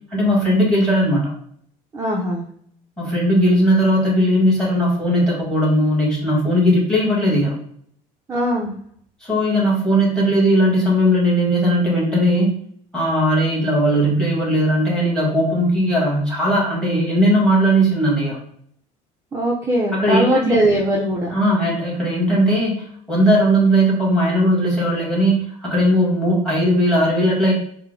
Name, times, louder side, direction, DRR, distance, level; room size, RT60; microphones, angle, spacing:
voice 1, 0.1-1.3 3.0-7.5 9.2-12.5 12.9-18.4 19.9-20.7 21.3-27.5, equal, 5° left, -5 dB, 1.6 m, -18 dB
voice 2, 1.9-2.5 8.3-8.7 19.3-21.4, right 1 dB, 15° right, -3 dB, 0.6 m, -20 dB
4.5 x 2.2 x 3.7 m, 0.63 s
cardioid pair, 160°, 16 cm